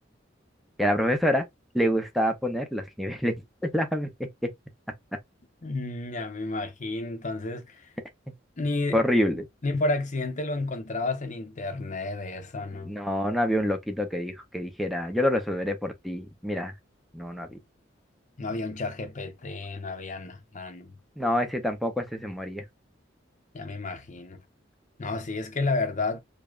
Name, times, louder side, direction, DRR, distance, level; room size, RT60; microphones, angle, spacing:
voice 1, 0.8-1.4 1.7-4.1 8.9-9.5 12.8-16.7 17.1-17.6 21.2-22.6, equal, ahead, 0.6 m, -27 dB
voice 2, 5.6-7.8 8.6-9.0 9.6-12.9 18.4-20.9 23.5-24.4 25.0-26.2, left 2 dB, 40° left, 0.7 m, -31 dB
4.9 x 2.2 x 2.3 m
head